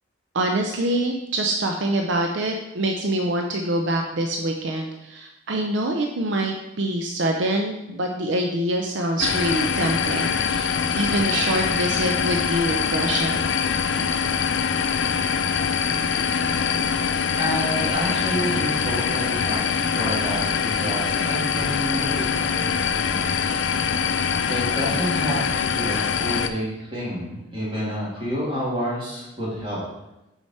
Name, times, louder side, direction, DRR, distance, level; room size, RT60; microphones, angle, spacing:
voice 1, 0.3-13.7, right 1 dB, 65° right, 3 dB, 0.5 m, -25 dB
sound 1, 9.2-26.5, left 6 dB, 65° left, 0.4 m, -24 dB
voice 2, 17.4-23.4 24.5-29.8, equal, 25° right, -6 dB, 2.3 m, -29 dB
6.4 x 4.9 x 4.2 m, 0.94 s
head